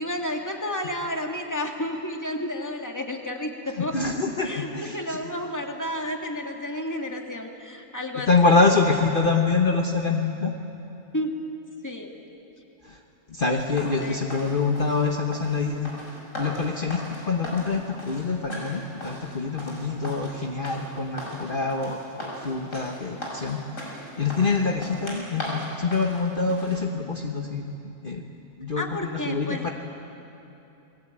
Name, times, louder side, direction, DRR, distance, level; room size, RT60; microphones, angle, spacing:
voice 1, 0.0-4.1 4.4-8.5 11.1-11.3 11.8-12.1 14.0-14.3 28.8-29.7, left 1 dB, 15° left, 2 dB, 2.2 m, -31 dB
voice 2, 3.9-5.2 8.3-10.5 12.9-13.0 13.3-15.9 16.4-23.9 24.2-27.7 28.0-28.2 28.6-28.8 29.2-29.7, left 4 dB, 40° left, 1 dB, 1.5 m, -25 dB
sound 1, 13.6-26.8, equal, 70° left, 6.7 m, -38 dB
29.0 x 21.0 x 9.0 m, 2.9 s
omnidirectional pair, 1.4 m